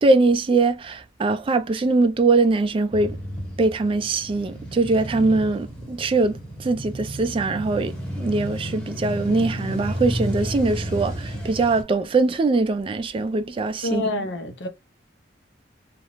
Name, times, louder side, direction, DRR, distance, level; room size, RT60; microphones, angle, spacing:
voice 1, 0.0-3.2 3.6-6.3 6.6-14.1, right 3 dB, 30° right, 0.3 m, -22 dB
Male speech man speaking / Motorcycle / Idling, 2.9-11.8, equal, 5° left, 0.9 m, -32 dB
voice 2, 13.8-14.7, left 2 dB, 70° left, 0.7 m, -27 dB
2.4 x 2.0 x 3.1 m
head